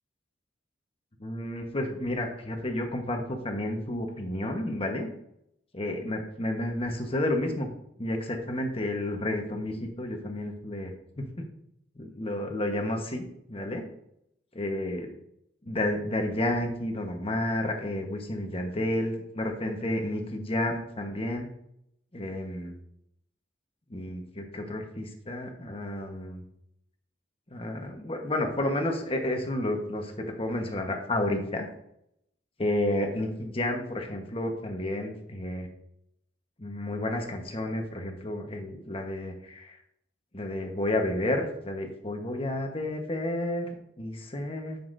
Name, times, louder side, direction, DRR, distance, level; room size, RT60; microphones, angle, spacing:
voice 1, 1.2-5.1 5.7-7.7 8.0-11.5 11.9-13.8 14.5-15.1 15.6-21.5 22.1-22.8 23.9-26.4 27.5-31.7 32.6-35.7 36.6-39.8 40.3-44.8, left 1 dB, 30° left, 3 dB, 1.3 m, -31 dB
9.4 x 7.2 x 2.7 m, 0.76 s
head